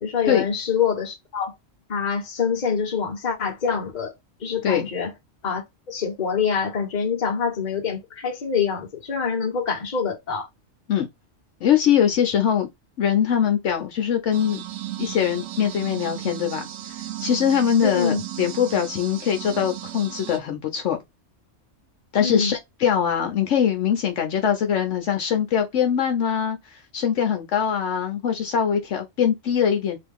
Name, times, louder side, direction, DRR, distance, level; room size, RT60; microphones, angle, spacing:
voice 1, 0.0-1.5 1.9-4.1 4.4-5.1 5.4-10.5 17.8-18.2 22.2-22.5, left 6 dB, 40° left, 1.0 m, -25 dB
voice 2, 11.6-12.7 13.0-14.6 15.0-16.7 17.2-21.0 22.1-26.6 26.9-30.0, left 8 dB, 70° left, 1.0 m, -22 dB
sound 1, 14.3-20.4, right 13 dB, 85° right, 1.0 m, -35 dB
2.8 x 2.5 x 3.5 m
omnidirectional pair, 1.3 m